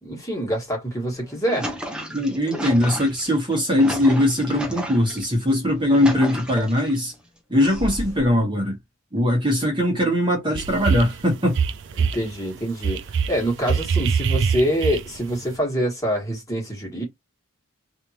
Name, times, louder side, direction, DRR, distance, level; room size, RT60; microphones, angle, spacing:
voice 1, 0.0-1.7 12.0-17.0, equal, 15° left, 1.7 m, -25 dB
sound 1, 1.1-5.2 5.7-7.0 7.6-8.3, equal, 5° right, 0.8 m, -32 dB
voice 2, 2.1-7.1 7.5-8.8 9.1-11.6, left 1 dB, 20° right, 1.3 m, -20 dB
sound 2, 10.6-11.2 11.5-12.3 12.8-15.3, right 6 dB, 55° right, 0.4 m, -23 dB
3.5 x 2.8 x 2.9 m
head